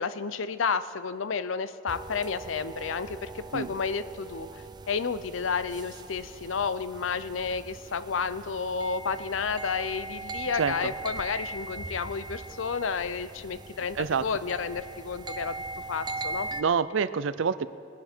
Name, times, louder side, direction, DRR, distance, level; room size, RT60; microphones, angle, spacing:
voice 1, 0.0-15.6 15.9-16.5, left 5 dB, 80° left, 13 dB, 0.6 m, -31 dB
sound 1, 1.9-16.6, right 3 dB, 20° right, 0.4 m, -40 dB
voice 2, 10.6-10.9 14.0-14.2 16.6-17.7, right 6 dB, 75° right, 15 dB, 0.5 m, -27 dB
21.5 x 10.5 x 4.4 m, 2.4 s
head